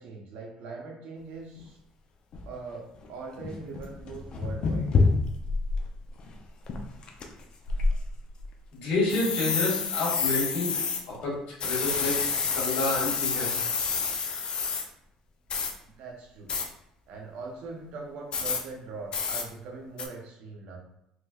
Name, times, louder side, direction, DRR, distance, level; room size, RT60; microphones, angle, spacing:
voice 1, 0.0-1.8 2.5-4.9 15.8-16.5 17.1-20.8, right 4 dB, 75° right, 0 dB, 0.8 m, -41 dB
sound 1, 1.6-1.7 2.3-2.5 3.0-3.1 3.4-5.8 6.2-6.3 6.7-7.2 7.7-8.5 9.1-11.0 11.6-14.8 15.5-15.7 16.5-16.7 18.3-18.6 19.1-19.4 20.0-20.1, left 4 dB, 45° left, 0.5 m, -28 dB
voice 2, 8.7-10.7 11.1-12.2 12.5-13.7, left 2 dB, 75° left, -4 dB, 1.4 m, -29 dB
3.2 x 3.0 x 2.3 m, 0.81 s
cardioid pair, 100°, 2 cm